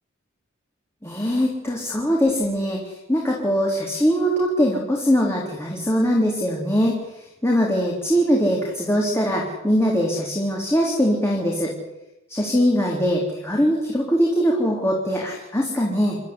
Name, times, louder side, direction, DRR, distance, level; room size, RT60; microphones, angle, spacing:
voice 1, 1.0-7.0 7.4-11.7 12.3-16.2, equal, 15° left, -2 dB, 3.7 m, -21 dB
29.5 x 12.5 x 9.8 m, 0.94 s
head